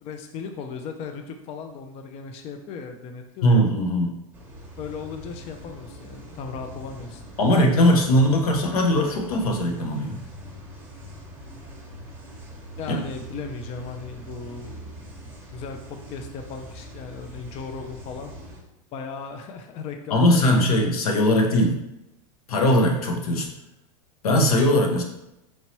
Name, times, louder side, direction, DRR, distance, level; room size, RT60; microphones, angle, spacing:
voice 1, 0.0-3.6 4.8-7.2 12.8-15.2 15.5-18.4 18.9-20.7, left 5 dB, 35° left, 6 dB, 0.4 m, -37 dB
voice 2, 3.4-4.1 7.4-10.2 12.9-13.0 20.1-21.8 22.5-23.5 24.2-25.0, left 1 dB, 85° left, 2 dB, 0.8 m, -20 dB
sound 1, 4.3-18.6, right 1 dB, 10° right, 1.0 m, -42 dB
4.4 x 2.8 x 2.9 m, 0.89 s
hypercardioid pair, 115°, 18 cm